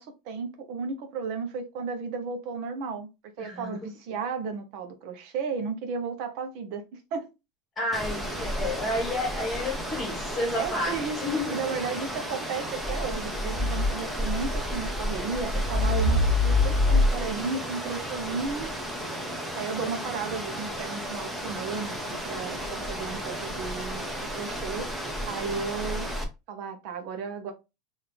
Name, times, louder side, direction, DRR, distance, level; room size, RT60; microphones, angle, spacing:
voice 1, 0.0-3.1 3.4-7.3 10.6-18.7 19.5-26.1 26.5-27.5, right 5 dB, 60° right, 0.9 m, -34 dB
voice 2, 3.4-3.9 7.7-11.6, left 1 dB, 20° left, 1.6 m, -31 dB
sound 1, 7.9-26.2, left 1 dB, 5° right, 0.9 m, -30 dB
3.8 x 2.7 x 3.3 m
supercardioid pair, 135°, 0 cm